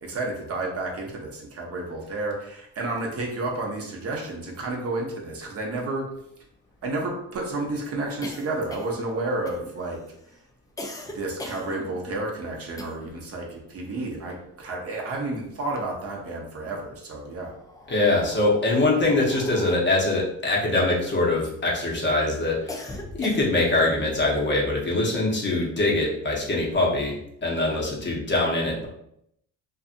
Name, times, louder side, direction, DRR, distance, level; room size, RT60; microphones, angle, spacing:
voice 1, 0.0-6.1 6.8-10.0 11.1-17.5 27.7-27.8, right 2 dB, 40° right, -1 dB, 0.7 m, -31 dB
sound 1, 5.5-5.6 5.8-13.3 13.6-15.2 15.5-16.4 17.2-21.7 22.1-23.8, left 1 dB, 10° left, 0.3 m, -42 dB
voice 2, 17.9-28.9, left 2 dB, 30° left, -3 dB, 0.8 m, -23 dB
2.6 x 2.5 x 2.5 m, 0.74 s
cardioid pair, 95°, 37 cm